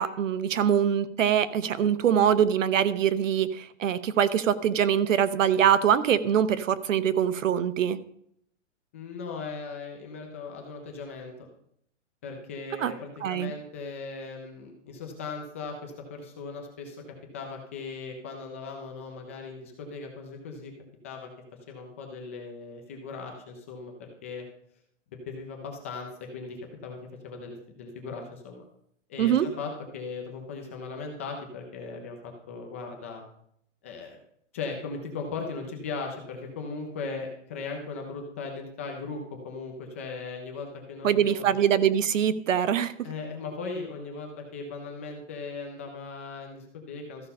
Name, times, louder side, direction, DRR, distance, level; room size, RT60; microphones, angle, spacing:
voice 1, 0.0-8.0 12.8-12.9 13.2-13.5 29.2-29.5 41.0-42.9, right 9 dB, 80° right, 14 dB, 0.9 m, -23 dB
voice 2, 8.9-11.5 12.2-17.0 17.3-20.7 21.0-21.3 21.7-24.4 25.1-26.6 26.8-28.7 29.1-33.2 33.8-34.2 34.5-41.4 43.0-47.3, left 4 dB, 10° left, 2 dB, 0.4 m, -38 dB
13.5 x 5.4 x 5.4 m, 0.71 s
hypercardioid pair, 160°, 38 cm